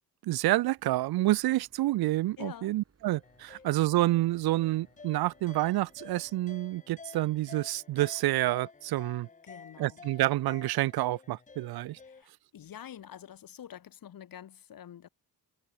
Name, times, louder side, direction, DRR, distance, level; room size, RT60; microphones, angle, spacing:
voice 1, 0.2-9.3 9.8-12.0, right 16 dB, 85° right, 0.6 m, -28 dB
Boat Water vehicle / Engine, 0.8-6.4, right 5 dB, 40° right, 4.4 m, -67 dB
voice 2, 2.4-2.8 3.5-3.6 9.4-10.0 12.0-15.1, left 10 dB, 70° left, 2.3 m, -47 dB
sound 1, 3.2-12.2, left 4 dB, 20° left, 0.8 m, -51 dB
cardioid pair, 95°, 36 cm